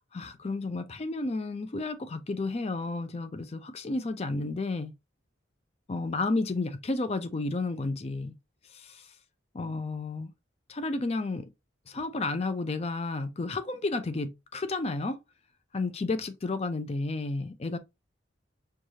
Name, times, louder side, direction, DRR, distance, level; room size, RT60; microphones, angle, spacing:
voice 1, 0.1-4.9 5.9-8.4 8.7-9.1 9.5-10.3 10.7-11.5 11.9-15.2 15.7-17.8, left 3 dB, 30° left, 0.4 m, -32 dB
4.6 x 2.3 x 2.7 m
head